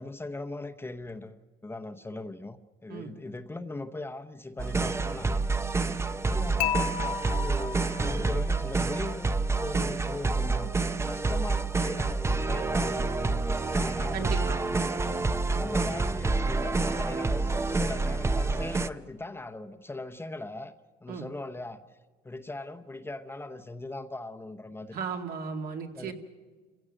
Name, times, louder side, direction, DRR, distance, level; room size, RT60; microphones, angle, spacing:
voice 1, 0.0-5.5 6.3-6.9 7.3-10.7 11.0-14.4 15.1-20.7 21.0-21.8 22.2-25.0 25.9-26.1, left 2 dB, 15° left, 7 dB, 0.9 m, -39 dB
sound 1, 4.6-18.9, right 3 dB, 15° right, 0.6 m, -28 dB
Dishes pots and pans / Chink clink, 6.6-8.7, left 9 dB, 60° left, 1.6 m, -33 dB
voice 2, 14.1-14.6 21.1-21.3 24.9-26.1, right 5 dB, 65° right, 3 dB, 2.2 m, -35 dB
29.5 x 16.5 x 6.5 m, 1.4 s
cardioid pair, 110°, 17 cm